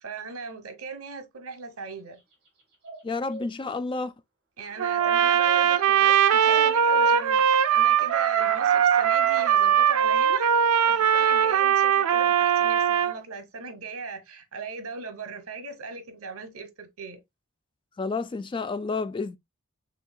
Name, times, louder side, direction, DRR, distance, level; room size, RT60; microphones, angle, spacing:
voice 1, 0.0-2.2 4.6-17.2, right 4 dB, 70° right, 1.0 m, -39 dB
sound 1, 2.8-3.5 5.0-5.6 6.4-7.1, right 1 dB, 45° right, 1.7 m, -39 dB
voice 2, 3.0-4.1 18.0-19.4, left 4 dB, 25° left, 0.3 m, -30 dB
Trumpet, 4.8-13.1, right 8 dB, 90° right, 0.4 m, -21 dB
4.6 x 3.4 x 2.2 m
head